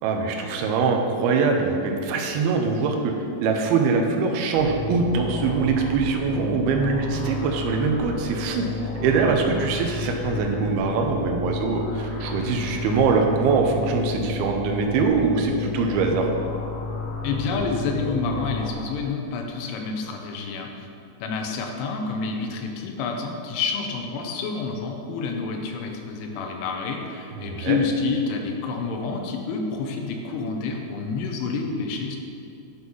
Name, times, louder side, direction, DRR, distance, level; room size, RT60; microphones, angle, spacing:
voice 1, 0.0-3.1 3.4-8.7 9.0-16.3 27.4-27.8, right 4 dB, 85° right, 2 dB, 2.2 m, -23 dB
sound 1, 4.6-18.7, left 4 dB, 70° left, 1.9 m, -32 dB
voice 2, 17.2-20.9 21.2-32.2, left 4 dB, 85° left, 3 dB, 3.3 m, -28 dB
10.0 x 6.3 x 5.4 m, 2.6 s
omnidirectional pair, 5.5 m